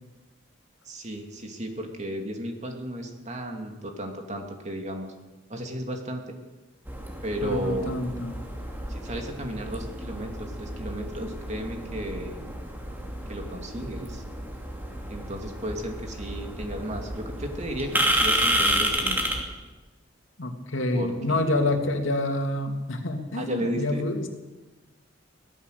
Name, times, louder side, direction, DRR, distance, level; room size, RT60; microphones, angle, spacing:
voice 1, 0.8-5.1 5.5-6.3 7.2-8.0 8.9-12.4 13.3-14.2 15.1-19.3 20.9-21.7 23.4-24.0, equal, 35° right, 3 dB, 2.8 m, -34 dB
sound 1, 6.9-19.4, right 1 dB, 10° right, 3.1 m, -30 dB
voice 2, 7.4-8.4 20.4-24.3, left 2 dB, 70° left, 4 dB, 2.6 m, -27 dB
23.0 x 17.5 x 6.8 m, 1.2 s
head